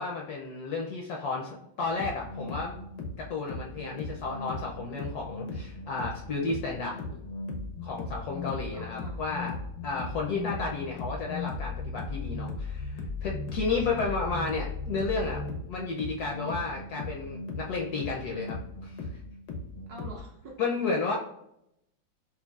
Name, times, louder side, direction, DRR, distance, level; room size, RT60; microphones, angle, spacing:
voice 1, 0.0-2.8 3.2-7.2 7.8-9.6 9.8-15.4 15.7-18.6 18.8-19.1 20.6-21.2, left 4 dB, 70° left, 0 dB, 0.9 m, -32 dB
sound 1, 1.8-20.2, left 3 dB, 90° left, 1.6 m, -37 dB
voice 2, 8.7-9.2 10.2-10.8 13.7-14.4 19.9-20.6 21.0-21.2, right 1 dB, 65° right, -1 dB, 1.0 m, -46 dB
5.4 x 2.4 x 2.3 m, 0.78 s
omnidirectional pair, 2.1 m